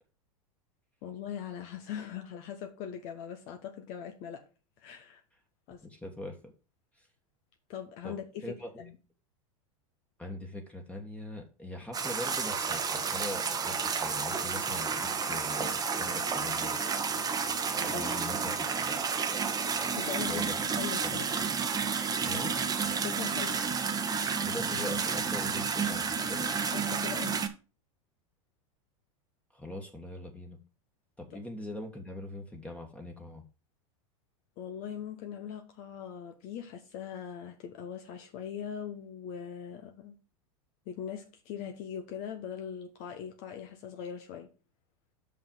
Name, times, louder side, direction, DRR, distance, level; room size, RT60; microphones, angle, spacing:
voice 1, 1.0-4.5 4.8-5.2 5.7-5.8 7.7-9.0 17.8-18.1 19.9-20.5 20.8-21.3 23.0-23.6 26.7-27.4 34.6-40.2 40.9-44.5, left 8 dB, 50° left, 1.2 m, -41 dB
voice 2, 5.8-6.5 6.9-7.1 8.0-8.1 8.4-8.8 10.2-16.8 17.8-19.0 20.2-20.7 21.0-21.2 22.2-22.6 24.4-26.5 29.5-30.6 31.2-33.4, left 1 dB, 5° left, 1.6 m, -42 dB
sound 1, 11.9-27.5, right 5 dB, 20° right, 1.1 m, -31 dB
5.8 x 5.4 x 6.1 m
hypercardioid pair, 100°, 18 cm